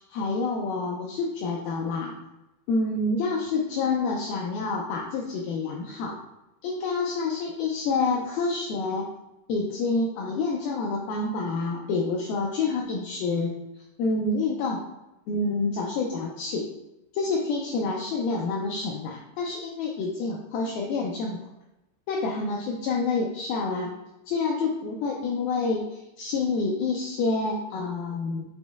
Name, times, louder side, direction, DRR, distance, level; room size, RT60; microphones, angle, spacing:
voice 1, 0.0-2.1 2.7-6.2 6.6-9.1 9.5-13.5 14.0-14.8 15.3-16.7 17.1-21.4 22.1-23.9 24.3-28.4, left 3 dB, 85° left, -2 dB, 2.1 m, -28 dB
7.2 x 3.0 x 2.3 m, 0.93 s
omnidirectional pair, 4.7 m